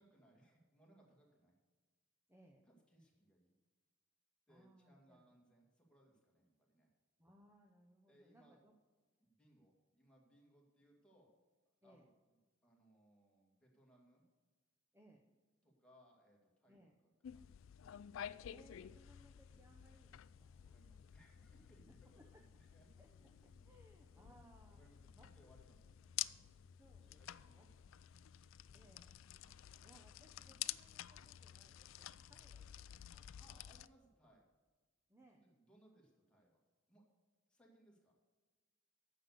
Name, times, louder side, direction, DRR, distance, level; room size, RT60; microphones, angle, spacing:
voice 1, 0.0-1.5 2.7-3.5 4.5-6.9 8.1-8.6 9.2-11.4 11.8-12.4 12.6-14.2 15.6-17.4 20.6-22.5 22.7-23.7 24.0-24.4 24.7-26.6 27.0-28.2 28.5-28.7 29.4-30.0 30.3-30.7 33.4-34.4 35.2-36.6 36.9-37.0 37.5-38.2, right 1 dB, 5° left, -3 dB, 2.3 m, -70 dB
voice 2, 2.3-2.7 4.5-5.3 7.2-8.7 11.8-12.1 14.9-15.3 16.7-17.0 18.5-20.7 21.9-22.4 23.0-25.3 26.7-27.7 28.7-29.2 29.8-33.4 35.1-35.5, right 1 dB, 15° right, 1 dB, 0.8 m, -67 dB
sound 1, 17.2-33.9, left 12 dB, 75° left, 0.3 m, -51 dB
9.7 x 6.8 x 6.6 m, 1.3 s
head